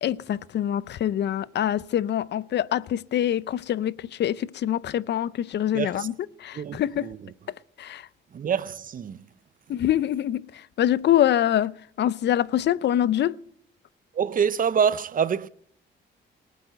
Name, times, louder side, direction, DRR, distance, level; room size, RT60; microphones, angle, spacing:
voice 1, 0.0-6.1 6.4-7.1 7.8-8.0 9.7-10.4 10.8-13.4, left 11 dB, 60° left, 0.6 m, -25 dB
voice 2, 5.7-6.1 6.5-7.3 8.3-9.3 14.1-15.5, right 7 dB, 45° right, 0.7 m, -26 dB
19.0 x 8.4 x 7.7 m
cardioid pair, 90°, 20 cm